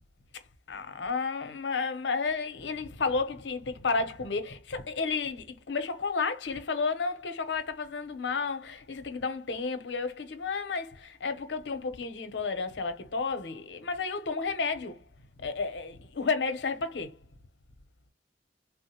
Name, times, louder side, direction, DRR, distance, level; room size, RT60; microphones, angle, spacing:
voice 1, 0.7-15.0 15.4-17.2, left 4 dB, 80° left, 0.6 m, -32 dB
3.5 x 2.1 x 2.9 m
head